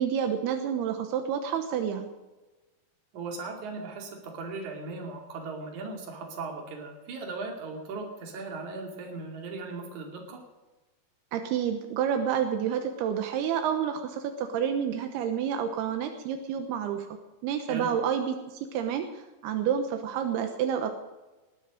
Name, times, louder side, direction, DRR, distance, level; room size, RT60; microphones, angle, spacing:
voice 1, 0.0-2.1 11.3-17.1 17.4-19.1 19.4-20.9, right 8 dB, 85° right, 6 dB, 3.0 m, -29 dB
voice 2, 3.1-10.4 17.7-17.9, right 3 dB, 50° right, 2 dB, 3.7 m, -38 dB
19.5 x 12.5 x 5.2 m, 1.1 s
omnidirectional pair, 4.5 m